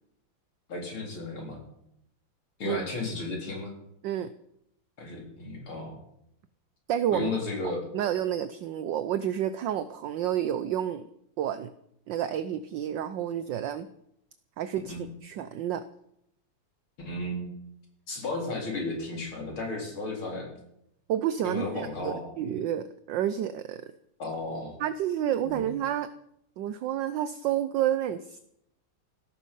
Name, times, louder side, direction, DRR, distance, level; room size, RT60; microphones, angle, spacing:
voice 1, 0.7-1.6 2.6-3.7 5.0-6.0 7.1-7.8 14.9-15.1 17.0-17.5 18.1-20.5 21.4-22.2 24.2-24.8 25.4-25.7, left 2 dB, 70° left, 1 dB, 4.8 m, -34 dB
voice 2, 6.9-7.4 7.9-11.1 11.4-11.7 12.1-13.9 14.6-15.0 15.2-15.8 21.1-23.8 24.8-26.1 26.6-28.4, right 10 dB, 70° right, 13 dB, 1.2 m, -30 dB
16.0 x 13.5 x 5.5 m, 0.75 s
omnidirectional pair, 2.4 m